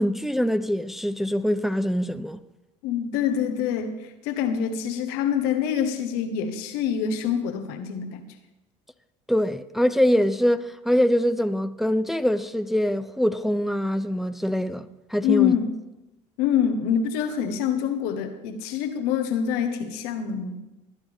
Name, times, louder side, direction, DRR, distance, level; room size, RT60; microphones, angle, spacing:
voice 1, 0.0-2.4 9.3-15.6, equal, ahead, 0.6 m, -24 dB
voice 2, 2.8-8.2 15.2-15.7 16.4-20.6, left 8 dB, 75° left, 1.3 m, -25 dB
19.5 x 9.3 x 3.6 m
hypercardioid pair, 70°, 17 cm